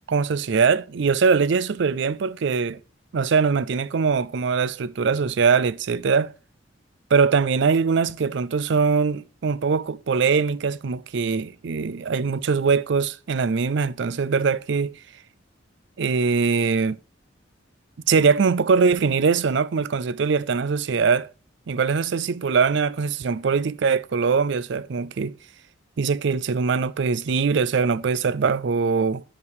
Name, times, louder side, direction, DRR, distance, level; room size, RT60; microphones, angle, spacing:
voice 1, 0.1-2.8 3.1-6.3 7.1-15.0 16.0-17.0 18.1-21.3 21.7-25.3 26.0-29.2, right 5 dB, 60° right, 0.4 m, -22 dB
9.6 x 5.2 x 4.8 m
head